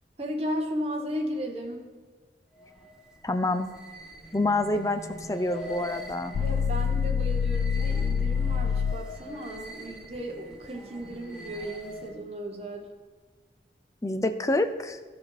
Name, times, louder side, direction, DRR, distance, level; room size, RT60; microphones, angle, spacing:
voice 1, 0.2-1.8 6.4-12.9, equal, 35° right, 0 dB, 1.2 m, -35 dB
sound 1, 2.5-12.3, equal, 5° right, 0.9 m, -43 dB
voice 2, 3.2-3.7 4.3-6.3 14.0-15.0, left 2 dB, 20° left, 8 dB, 0.5 m, -27 dB
sound 2, 6.3-9.1, left 6 dB, 90° left, 0.3 m, -26 dB
13.5 x 6.2 x 4.9 m, 1.4 s
head